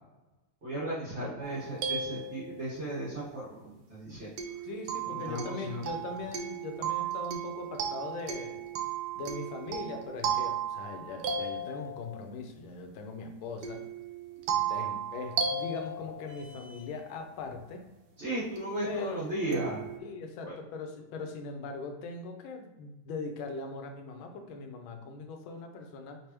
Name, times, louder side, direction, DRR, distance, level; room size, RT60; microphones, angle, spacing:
voice 1, 0.6-4.3 5.1-5.8 18.2-19.8 20.4-20.5, right 1 dB, 35° right, -8 dB, 1.3 m, -35 dB
sound 1, 1.4-2.9 4.4-12.3 13.6-17.0 18.6-18.7 19.5-20.0, right 6 dB, 80° right, 1.5 m, -35 dB
voice 2, 4.6-8.6 9.2-13.8 14.5-17.8 18.8-19.2 20.0-26.2, left 3 dB, 75° left, 5 dB, 1.4 m, -40 dB
5.2 x 3.3 x 2.9 m, 1.1 s
omnidirectional pair, 2.4 m